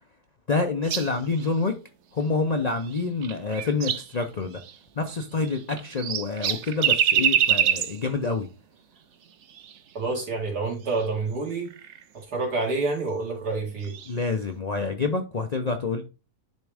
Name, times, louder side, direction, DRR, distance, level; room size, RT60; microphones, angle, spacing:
voice 1, 0.5-1.7 2.1-4.6 5.0-8.5 14.1-16.0, left 4 dB, 65° left, 0.4 m, -27 dB
sound 1, 0.8-1.5 2.8-4.1 4.5-4.8 5.4-8.1 9.5-9.8 10.9-11.1 11.7-12.0 13.8-14.1, right 9 dB, 60° right, 0.8 m, -26 dB
voice 2, 9.9-11.7 12.1-13.9, right 3 dB, 85° right, 2.8 m, -28 dB
10.5 x 3.5 x 3.4 m
omnidirectional pair, 1.7 m